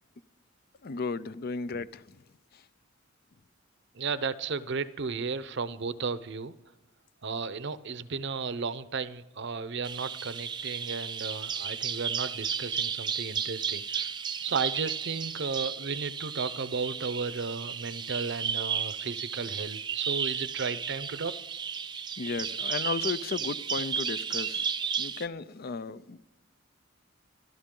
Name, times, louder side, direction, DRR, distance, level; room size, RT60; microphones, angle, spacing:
voice 1, 0.8-2.2 22.2-24.7 25.0-26.3, left 4 dB, 50° left, 0.5 m, -34 dB
voice 2, 4.0-6.5 7.2-14.1 14.4-21.3, right 5 dB, 60° right, 0.7 m, -34 dB
Bird vocalization bird call bird song, 9.8-25.3, right 7 dB, 20° right, 0.4 m, -34 dB
29.0 x 12.5 x 3.8 m
head